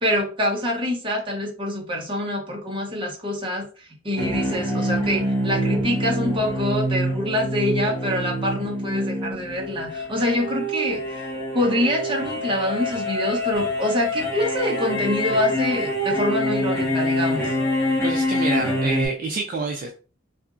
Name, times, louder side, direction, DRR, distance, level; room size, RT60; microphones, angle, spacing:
voice 1, 0.0-11.3 11.5-17.5, left 1 dB, 25° right, -1 dB, 0.8 m, -25 dB
sound 1, 4.2-19.1, equal, 15° left, 1.0 m, -25 dB
voice 2, 18.0-19.9, right 3 dB, 45° right, 2 dB, 0.4 m, -27 dB
2.9 x 2.4 x 2.4 m, 0.37 s
head